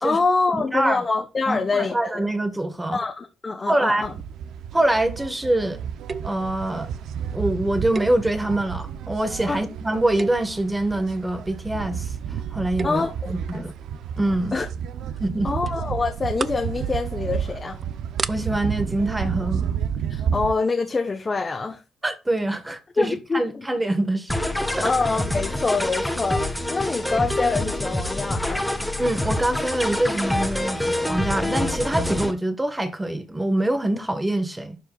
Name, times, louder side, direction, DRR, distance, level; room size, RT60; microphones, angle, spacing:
voice 1, 0.0-2.2 2.9-4.1 9.5-9.6 12.8-13.7 14.5-14.7 15.4-17.8 20.1-21.8 23.0-23.7 24.8-28.6, left 4 dB, 30° left, 1.0 m, -25 dB
voice 2, 0.5-1.0 1.5-3.0 3.7-4.0 4.7-5.8 6.2-7.0 7.3-12.1 12.5-13.7 14.2-14.6 15.2-15.5 18.3-19.7 22.0-24.3 24.6-24.9 29.0-34.8, right 1 dB, 10° right, 1.5 m, -24 dB
sound 1, 4.0-20.5, right 8 dB, 80° right, 0.7 m, -31 dB
sound 2, 6.1-6.5 7.9-8.7 9.2-9.5 10.1-10.6 12.5-13.2 14.6-14.9 15.2-15.3 15.6-15.8 16.1-16.7 17.1-17.3 17.8-17.9 18.2-18.3, right 4 dB, 35° right, 0.4 m, -32 dB
sound 3, 24.3-32.3, left 1 dB, 5° left, 1.2 m, -26 dB
11.5 x 4.8 x 2.4 m
cardioid pair, 90°, 0 cm